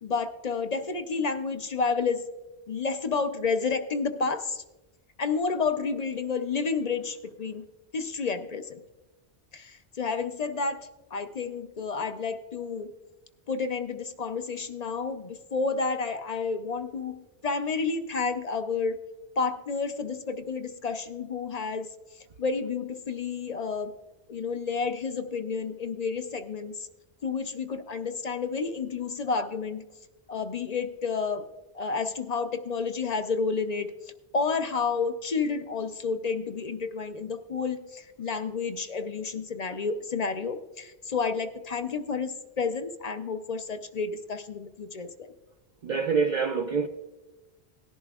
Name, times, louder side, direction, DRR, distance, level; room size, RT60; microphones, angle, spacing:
voice 1, 0.0-2.2 2.7-4.6 5.2-7.6 7.9-8.8 9.5-12.9 13.5-19.0 19.4-21.9 22.4-23.9 24.3-26.9 27.2-29.8 30.3-31.5 31.7-33.9 34.3-45.3, left 4 dB, 45° left, 0.6 m, -30 dB
voice 2, 45.8-46.9, right 5 dB, 55° right, 0.6 m, -26 dB
17.5 x 11.0 x 2.3 m
omnidirectional pair, 1.1 m